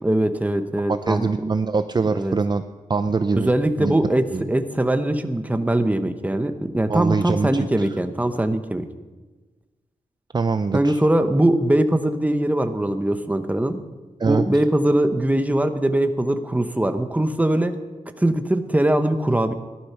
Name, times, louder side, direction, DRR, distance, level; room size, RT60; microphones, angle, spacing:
voice 1, 0.0-1.3 2.0-2.4 3.4-8.9 10.7-13.8 14.3-17.8 18.2-19.5, right 1 dB, 10° right, 8 dB, 0.9 m, -21 dB
voice 2, 1.1-2.6 2.9-3.5 3.8-4.0 4.3-4.4 6.9-7.9 10.3-11.0 14.2-14.5, right 4 dB, 30° right, 10 dB, 0.5 m, -23 dB
17.0 x 11.5 x 5.8 m, 1.3 s
wide cardioid pair, 125°, 14 cm